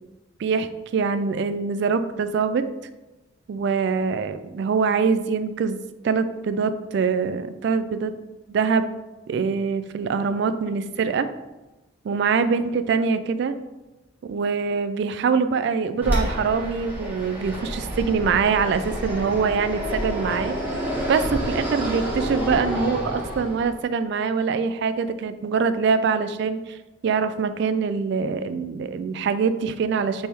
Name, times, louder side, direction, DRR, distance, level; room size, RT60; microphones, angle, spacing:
voice 1, 0.4-2.6 3.5-8.1 8.5-8.9 9.3-11.3 12.0-13.5 14.3-20.6 21.1-26.8 27.0-30.3, right 5 dB, 60° right, 11 dB, 0.3 m, -24 dB
Fixed-wing aircraft airplane, 16.0-23.8, equal, 10° right, 1.4 m, -29 dB
4.2 x 3.3 x 3.4 m, 1.1 s
head